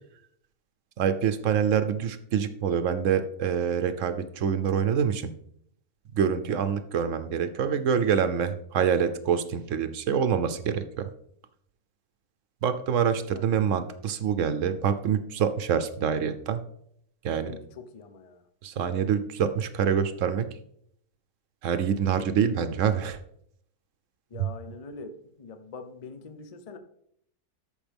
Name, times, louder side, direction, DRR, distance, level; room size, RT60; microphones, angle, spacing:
voice 1, 1.0-5.3 6.1-11.1 12.6-16.6 17.2-17.5 18.6-20.5 21.6-23.2, right 7 dB, 65° right, 11 dB, 1.0 m, -26 dB
voice 2, 17.4-18.4 24.3-26.8, left 4 dB, 40° left, 9 dB, 0.5 m, -44 dB
13.5 x 5.2 x 3.5 m, 0.70 s
omnidirectional pair, 1.6 m